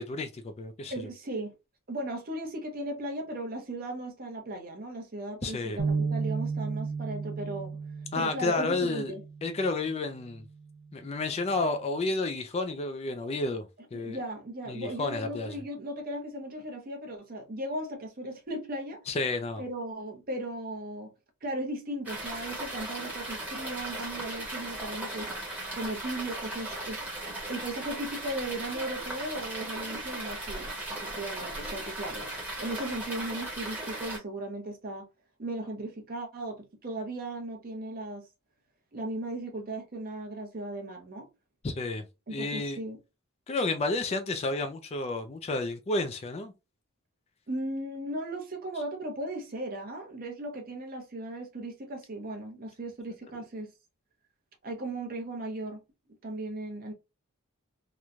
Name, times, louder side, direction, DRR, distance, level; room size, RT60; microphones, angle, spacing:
voice 1, 0.0-1.1 5.4-5.8 8.1-9.1 9.4-10.5 10.9-14.2 14.7-15.5 19.1-19.6 41.6-42.0 42.3-42.8 43.5-46.5, left 2 dB, 30° left, 0.3 m, -31 dB
voice 2, 0.9-1.5 1.9-9.2 13.9-19.0 19.6-21.1 21.4-25.3 25.7-27.0 27.5-32.3 32.6-35.1 35.4-38.3 38.9-41.3 42.3-43.0 47.5-53.7 54.6-55.8 56.2-56.9, right 1 dB, 40° right, 0.7 m, -37 dB
sound 1, 5.8-10.0 10.5-10.8 11.6-12.0, right 4 dB, 80° right, 0.7 m, -34 dB
sound 2, 22.1-34.2, right 1 dB, 5° right, 0.9 m, -37 dB
3.0 x 2.1 x 2.4 m
head